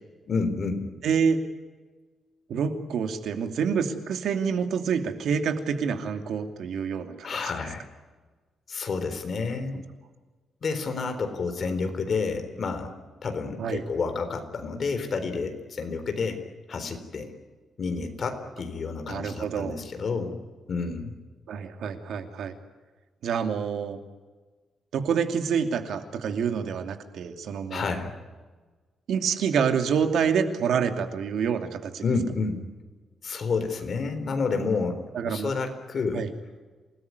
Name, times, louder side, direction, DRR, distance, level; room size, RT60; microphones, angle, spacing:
voice 1, 0.3-0.8 7.2-7.9 8.7-9.8 10.6-12.9 13.2-16.4 16.7-17.3 17.8-20.4 20.7-21.1 27.7-28.1 32.0-32.6 33.2-35.0 35.2-36.3, left 4 dB, 40° left, 7 dB, 3.9 m, -29 dB
voice 2, 1.0-1.4 2.5-7.3 9.7-9.8 13.6-13.8 19.1-19.8 21.5-22.5 23.2-24.0 24.9-27.9 29.1-32.0 35.1-35.5 36.1-36.3, right 6 dB, 70° right, 6 dB, 2.7 m, -27 dB
28.5 x 19.5 x 9.7 m, 1.3 s
wide cardioid pair, 165°, 0 cm